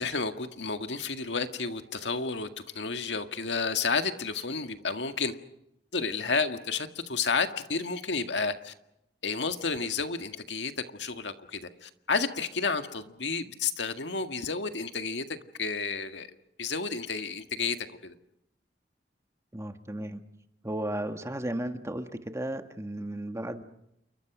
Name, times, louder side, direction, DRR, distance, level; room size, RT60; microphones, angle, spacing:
voice 1, 0.0-5.3 5.9-8.7 9.2-16.3 16.6-17.8 18.0-18.1, left 4 dB, 80° left, 8 dB, 1.9 m, -31 dB
voice 2, 19.5-20.2 20.6-23.6, right 1 dB, 15° right, 7 dB, 1.7 m, -34 dB
29.0 x 23.5 x 6.2 m, 0.81 s
head